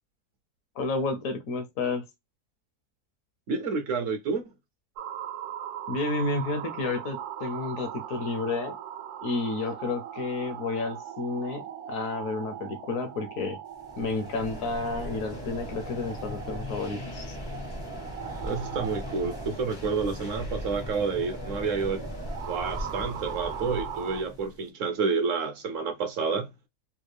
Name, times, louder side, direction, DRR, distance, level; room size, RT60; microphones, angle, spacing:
voice 1, 0.8-2.0 5.9-8.8 9.2-13.6 14.0-17.4, left 3 dB, 70° left, 1.0 m, -31 dB
voice 2, 3.5-4.4 18.4-22.1 22.5-26.5, right 5 dB, 65° right, 0.9 m, -29 dB
sound 1, 5.0-24.2, right 10 dB, 90° right, 1.1 m, -40 dB
sound 2, 13.8-24.6, left 2 dB, 30° left, 0.4 m, -39 dB
3.4 x 2.2 x 3.2 m
omnidirectional pair, 1.6 m